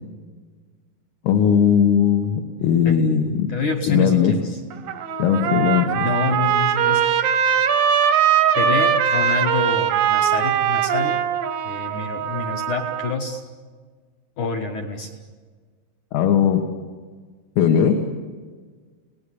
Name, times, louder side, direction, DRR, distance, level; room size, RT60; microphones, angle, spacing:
voice 1, 1.2-3.5 3.9-4.4 5.2-5.9 16.1-16.6 17.6-18.0, left 8 dB, 85° left, 3 dB, 4.2 m, -18 dB
voice 2, 3.5-4.6 5.5-5.6 5.9-7.0 8.5-11.2 11.7-13.4 14.4-15.1, left 4 dB, 70° left, 3 dB, 1.8 m, -27 dB
Trumpet, 4.7-13.1, right 8 dB, 80° right, 2.0 m, -21 dB
30.0 x 18.5 x 10.0 m, 1.5 s
omnidirectional pair, 5.7 m